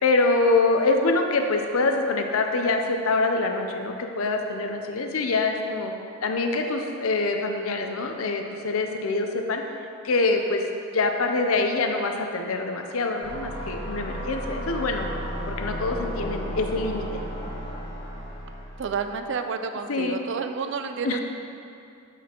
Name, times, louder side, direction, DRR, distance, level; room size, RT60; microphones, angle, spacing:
voice 1, 0.0-5.9 6.2-9.6 10.0-10.6 10.9-15.1 15.5-17.2 19.9-20.2 21.0-21.2, left 3 dB, 70° left, 4 dB, 0.6 m, -25 dB
sound 1, 13.2-19.2, equal, 20° left, 1.2 m, -34 dB
voice 2, 18.8-21.2, right 5 dB, 55° right, 7 dB, 0.4 m, -30 dB
8.3 x 5.8 x 2.9 m, 2.6 s
head